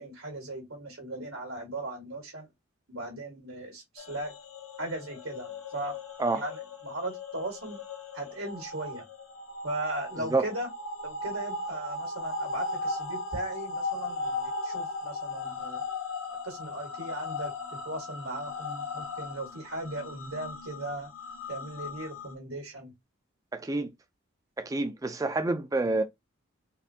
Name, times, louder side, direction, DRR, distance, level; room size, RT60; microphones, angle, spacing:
voice 1, 0.0-2.5 2.9-4.3 4.8-6.0 6.3-7.8 8.1-9.1 9.6-10.7 11.0-15.8 16.4-17.5 17.8-21.1 21.5-22.9, right 1 dB, 85° right, 1.5 m, -37 dB
sound 1, 4.0-22.3, left 3 dB, 80° left, 0.8 m, -37 dB
voice 2, 23.5-23.9 24.6-26.0, right 2 dB, 15° right, 0.3 m, -28 dB
4.1 x 2.6 x 2.7 m
head